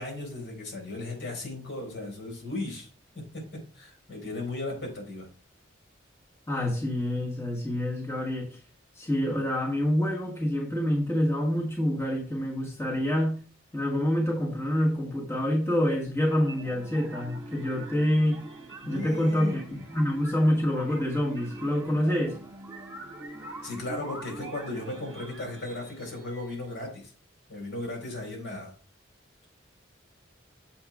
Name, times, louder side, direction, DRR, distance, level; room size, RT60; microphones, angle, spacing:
voice 1, 0.0-2.9 3.1-5.3 18.8-19.9 23.6-27.1 27.5-28.7, left 2 dB, 70° left, 3.7 m, -36 dB
voice 2, 6.5-8.6 8.9-13.4 13.7-18.5 18.9-22.4, left 1 dB, 10° left, 1.3 m, -27 dB
sound 1, 16.3-26.9, right 2 dB, 25° right, 1.5 m, -43 dB
7.2 x 5.5 x 3.5 m
head